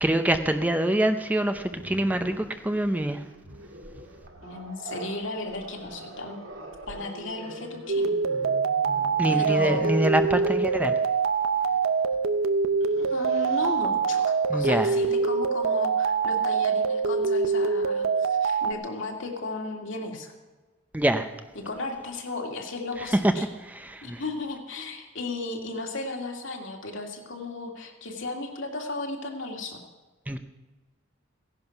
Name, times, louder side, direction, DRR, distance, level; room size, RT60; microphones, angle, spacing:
voice 1, 0.0-3.2 9.2-11.0 14.5-14.9 20.9-21.3 23.7-24.2 30.3-30.4, right 1 dB, 10° right, 8 dB, 0.6 m, -25 dB
Growling, 1.7-10.7 12.1-12.3 12.7-13.8, right 1 dB, 75° right, 2.1 m, -44 dB
voice 2, 4.4-6.4 6.9-8.2 9.3-10.1 12.8-20.3 21.5-23.5 24.0-29.8, left 2 dB, 65° left, 2 dB, 2.3 m, -35 dB
sound 1, 7.9-18.7, right 5 dB, 90° right, 0.8 m, -24 dB
16.0 x 11.0 x 5.9 m, 1.3 s
head